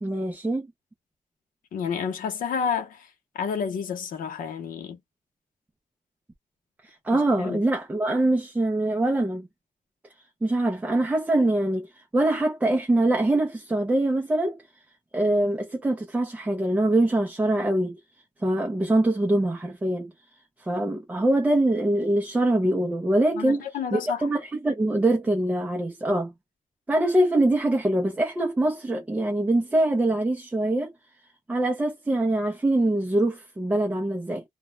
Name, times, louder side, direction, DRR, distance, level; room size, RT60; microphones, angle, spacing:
voice 1, 0.0-0.7 6.8-9.5 10.4-14.6 15.1-18.0 18.4-20.1 20.7-23.6 23.9-26.3 26.9-30.9 31.5-34.4, right 1 dB, 10° right, 0.4 m, -24 dB
voice 2, 1.7-3.1 3.3-5.0 7.1-7.6 23.3-24.3, left 6 dB, 85° left, 0.7 m, -30 dB
2.1 x 2.1 x 3.0 m
wide cardioid pair, 170°, 14 cm